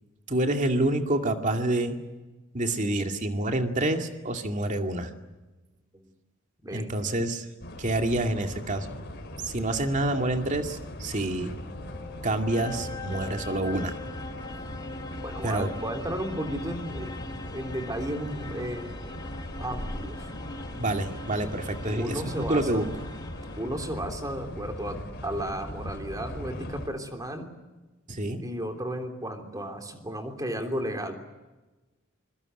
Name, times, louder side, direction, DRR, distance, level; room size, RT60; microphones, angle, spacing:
voice 1, 0.3-2.0 2.5-5.1 6.7-7.5 7.8-8.9 9.4-11.5 12.2-14.0 15.4-15.7 20.8-22.8 28.1-28.4, right 1 dB, 35° right, 5 dB, 2.3 m, -27 dB
voice 2, 6.6-7.2 15.2-19.2 19.6-20.2 21.9-22.9 23.6-27.5 28.4-31.1, right 1 dB, 15° right, 4 dB, 3.2 m, -34 dB
sound 1, 7.6-26.9, left 1 dB, 50° left, 3.6 m, -39 dB
sound 2, 11.3-24.1, left 3 dB, 20° left, 1.8 m, -42 dB
25.5 x 23.0 x 7.9 m, 1.1 s
head